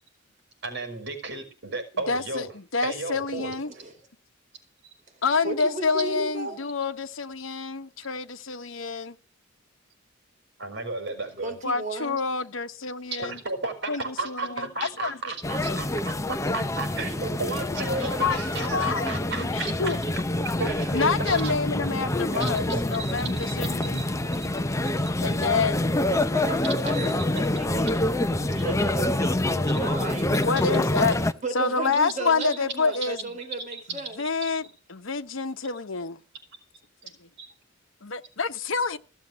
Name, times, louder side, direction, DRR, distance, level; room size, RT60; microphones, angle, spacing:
voice 1, 0.6-2.5 2.8-3.5 4.8-4.9 10.6-11.6 13.1-20.0 20.6-21.7 22.3-23.5 23.9-24.1 25.0-25.1 26.6-27.1 28.5-28.6 29.7-29.8 30.6-30.8 32.4-32.5 33.0-33.1 33.6-34.1 34.4-34.6 37.4-37.5, right 3 dB, 60° right, 5.5 m, -34 dB
voice 2, 2.1-3.7 5.2-9.2 11.6-13.4 13.9-15.2 15.7-15.8 18.2-20.0 20.9-24.0 25.2-25.8 30.3-31.1 31.5-33.2 34.2-34.6 34.9-36.2 38.0-39.0, left 4 dB, 75° left, 1.1 m, -28 dB
voice 3, 5.4-6.7 11.4-12.2 26.1-27.9 28.4-30.3 31.4-34.2, right 2 dB, 40° right, 4.9 m, -34 dB
sound 1, 15.4-31.3, left 1 dB, 15° left, 0.7 m, -26 dB
16.0 x 7.2 x 7.6 m
head